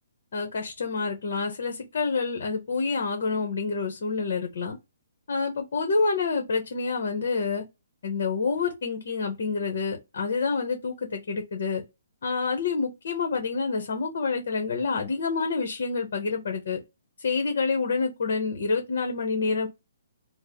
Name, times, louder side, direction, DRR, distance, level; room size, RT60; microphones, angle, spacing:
voice 1, 0.3-4.8 5.3-7.6 8.0-11.8 12.2-16.8 17.2-19.7, left 4 dB, 55° left, 1.0 m, -28 dB
3.1 x 2.1 x 3.8 m
hypercardioid pair, 170°, 0 cm